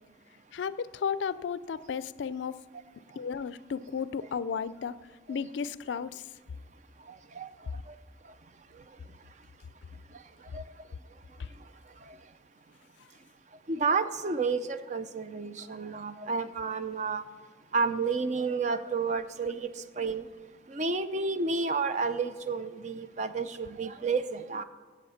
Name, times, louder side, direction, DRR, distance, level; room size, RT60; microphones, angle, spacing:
voice 1, 0.5-2.6 3.2-5.0 5.3-6.3 11.4-11.5, left 6 dB, 80° left, 17 dB, 0.4 m, -34 dB
voice 2, 13.7-17.2 17.7-19.7 20.0-20.2 20.7-24.6, right 4 dB, 40° right, 11 dB, 0.5 m, -30 dB
15.5 x 7.7 x 5.7 m, 1.4 s
head